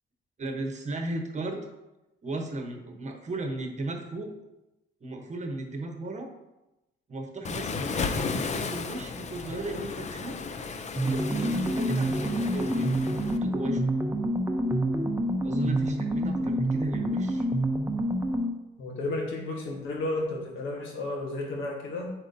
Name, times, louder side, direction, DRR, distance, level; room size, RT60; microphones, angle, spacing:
voice 1, 0.4-1.7 2.2-4.3 5.0-6.3 7.1-10.4 11.0-13.9 15.4-17.5, right 2 dB, 35° right, 4 dB, 1.0 m, -35 dB
Waves surf, 7.4-13.4, left 5 dB, 35° left, 0.5 m, -34 dB
sound 1, 11.0-18.6, right 1 dB, 10° right, 0.7 m, -27 dB
voice 2, 18.8-22.1, left 2 dB, 85° left, 0 dB, 1.3 m, -32 dB
8.0 x 4.3 x 2.7 m, 0.96 s
cardioid pair, 90°, 20 cm